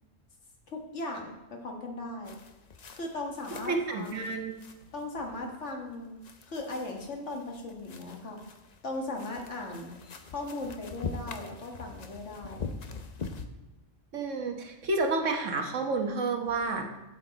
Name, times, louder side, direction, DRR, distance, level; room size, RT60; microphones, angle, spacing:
voice 1, 0.7-2.4 2.9-4.3 4.9-6.2 6.5-8.4 8.8-9.9 10.3-12.7, left 2 dB, 65° left, 1 dB, 1.8 m, -38 dB
sound 1, 2.2-13.5, left 4 dB, 40° left, 0.6 m, -44 dB
voice 2, 3.5-4.5 14.1-17.0, right 3 dB, 75° right, 3 dB, 1.5 m, -30 dB
11.5 x 7.9 x 4.1 m, 1.1 s
omnidirectional pair, 1.3 m